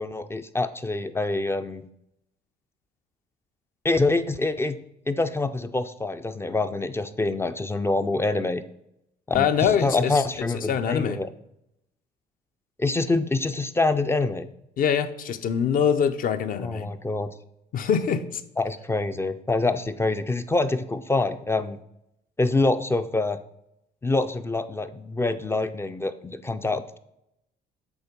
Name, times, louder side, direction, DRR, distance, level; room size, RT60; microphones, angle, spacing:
voice 1, 0.0-1.8 3.8-4.8 5.1-8.6 9.3-11.3 12.8-14.5 16.6-17.3 18.6-21.8 22.4-23.4 24.0-27.0, left 2 dB, 15° left, 10 dB, 0.3 m, -26 dB
voice 2, 9.3-10.3 10.5-11.2 14.8-16.9 17.7-18.4, left 7 dB, 55° left, 10 dB, 0.6 m, -24 dB
7.1 x 3.9 x 5.1 m, 0.81 s
cardioid pair, 110°, 17 cm